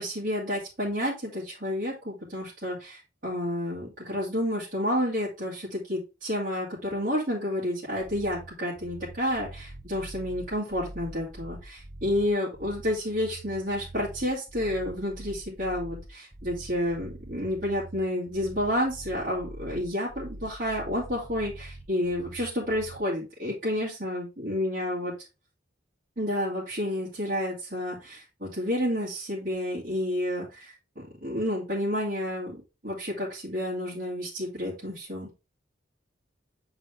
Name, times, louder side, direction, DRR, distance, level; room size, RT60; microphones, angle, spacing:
voice 1, 0.0-25.1 26.2-35.3, left 1 dB, 45° right, -7 dB, 2.1 m, -30 dB
sound 1, 8.0-23.0, right 1 dB, 20° right, 0.6 m, -44 dB
7.0 x 4.0 x 3.4 m, 0.29 s
head